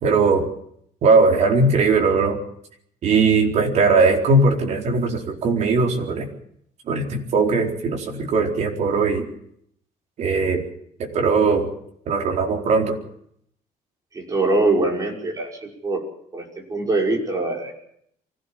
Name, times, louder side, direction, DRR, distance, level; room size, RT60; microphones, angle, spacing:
voice 1, 0.0-0.5 1.0-2.4 3.0-6.3 6.9-9.3 10.2-10.6 11.0-11.7 12.1-13.0, right 3 dB, 50° right, 2 dB, 4.4 m, -19 dB
voice 2, 14.1-16.0 16.3-16.4 16.7-17.7, right 2 dB, 25° right, 1 dB, 5.6 m, -23 dB
25.0 x 16.5 x 7.3 m, 0.69 s
cardioid pair, 165°, 15 cm